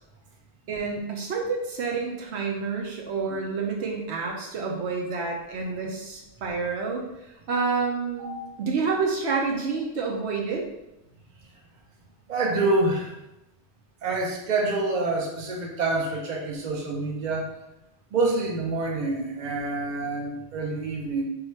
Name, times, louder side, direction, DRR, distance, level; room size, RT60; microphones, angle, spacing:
voice 1, 0.7-10.7, right 4 dB, 75° right, 0 dB, 0.9 m, -29 dB
voice 2, 8.2-8.5 12.3-13.2 14.0-17.5 18.1-21.2, right 2 dB, 45° right, -1 dB, 0.8 m, -27 dB
4.7 x 2.3 x 3.1 m, 0.90 s
omnidirectional pair, 1.2 m